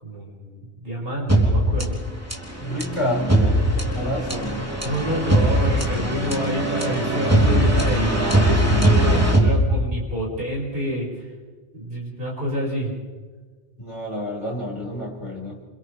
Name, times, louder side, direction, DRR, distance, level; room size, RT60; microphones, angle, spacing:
voice 1, 0.0-2.0 4.8-11.3 11.7-12.9, equal, 55° right, -4 dB, 6.5 m, -28 dB
sound 1, 1.3-10.2, right 1 dB, 15° right, 3.4 m, -20 dB
voice 2, 2.6-4.7 13.8-15.6, equal, 25° left, -5 dB, 7.0 m, -29 dB
28.5 x 28.5 x 3.5 m, 1.4 s
omnidirectional pair, 1.1 m